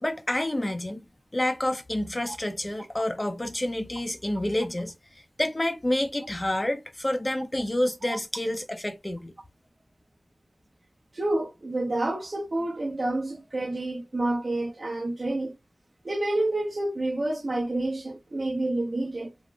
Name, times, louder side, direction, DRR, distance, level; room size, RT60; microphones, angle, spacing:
voice 1, 0.0-1.0 1.3-4.9 5.4-9.3, left 1 dB, 30° left, 0.5 m, -28 dB
voice 2, 11.1-15.6 16.0-19.3, right 2 dB, 55° right, 0.8 m, -29 dB
3.6 x 2.0 x 2.4 m
cardioid pair, 45°, 0 cm